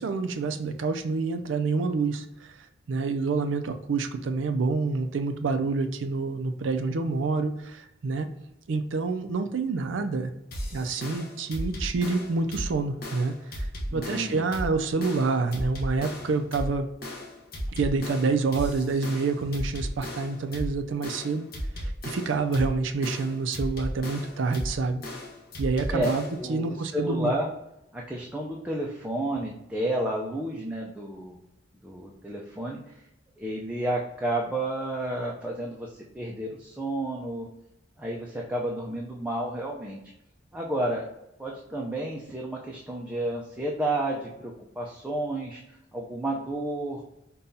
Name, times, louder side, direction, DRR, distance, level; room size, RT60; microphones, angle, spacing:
voice 1, 0.0-8.3 8.7-10.3 10.7-13.7 13.9-16.9 17.7-21.5 21.8-25.0 25.6-27.3, right 4 dB, 90° right, 8 dB, 0.4 m, -27 dB
sound 1, 10.5-26.5, equal, 55° left, 0.8 m, -36 dB
voice 2, 13.9-14.4 25.9-26.1 26.4-27.5 27.9-31.4 31.8-33.1 33.4-37.5 38.0-40.0 40.5-41.0 41.4-47.0, right 1 dB, 5° right, -3 dB, 0.4 m, -31 dB
5.3 x 2.3 x 2.6 m, 0.87 s
head